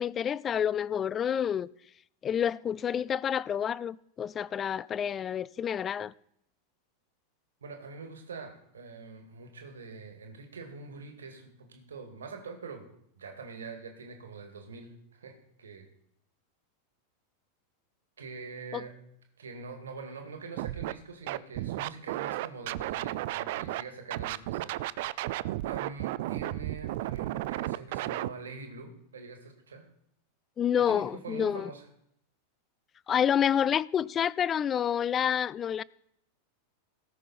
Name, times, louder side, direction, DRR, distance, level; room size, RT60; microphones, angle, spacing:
voice 1, 0.0-1.7 2.2-6.1 18.7-18.8 30.6-31.7 33.1-35.8, left 8 dB, 25° left, 0.3 m, -28 dB
voice 2, 7.6-12.9 13.2-15.9 18.2-18.9 19.4-24.7 25.2-29.9 30.9-31.8, right 4 dB, 70° right, 2.0 m, -44 dB
Scratching (performance technique), 20.6-20.9 21.3-23.8 24.1-28.3, right 16 dB, 50° right, 0.4 m, -33 dB
18.0 x 6.2 x 4.3 m
figure-of-eight pair, 90°, 0 cm